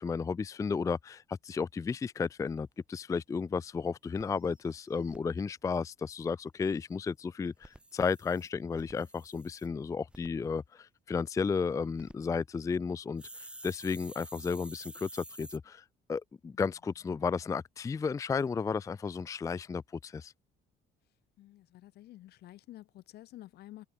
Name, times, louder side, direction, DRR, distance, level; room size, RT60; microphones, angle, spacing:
voice 1, 0.0-20.3, left 5 dB, 20° left, 0.4 m, -33 dB
sound 1, 3.0-3.1 3.5-3.6 3.8-3.9 4.2-5.2 7.5-9.7 10.1-10.3 11.7-12.1 13.2-15.6, right 1 dB, 5° right, 0.9 m, -50 dB
voice 2, 21.4-23.9, left 15 dB, 75° left, 3.9 m, -51 dB
cardioid pair, 110°, 17 cm